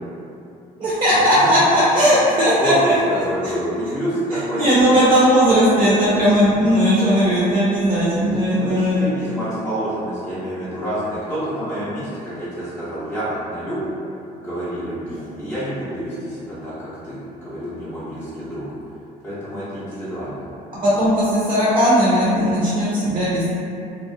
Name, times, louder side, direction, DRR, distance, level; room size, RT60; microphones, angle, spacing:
voice 1, 0.8-2.9 4.5-9.0 20.8-23.5, equal, 30° right, -9 dB, 0.5 m, -17 dB
voice 2, 2.5-2.9 3.3-5.0 8.5-13.8 14.4-18.7 19.2-20.4, right 1 dB, 10° left, -13 dB, 0.7 m, -28 dB
2.3 x 2.1 x 2.6 m, 2.7 s
cardioid pair, 110°, 17 cm